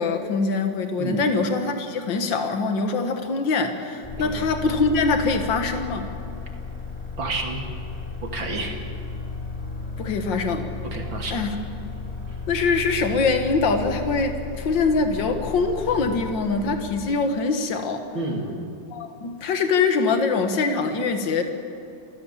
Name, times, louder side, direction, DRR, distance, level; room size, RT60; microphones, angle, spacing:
voice 1, 0.0-6.1 10.0-10.7 11.3-11.6 12.5-18.1 18.9-21.4, left 4 dB, 70° left, 5 dB, 2.2 m, -23 dB
sound 1, 4.0-16.8, left 4 dB, 5° left, 5.2 m, -34 dB
voice 2, 7.2-7.6 8.2-8.8 10.9-11.4 18.1-18.6, right 3 dB, 80° right, 1 dB, 3.4 m, -29 dB
29.0 x 15.5 x 7.3 m, 2.6 s
omnidirectional pair, 2.1 m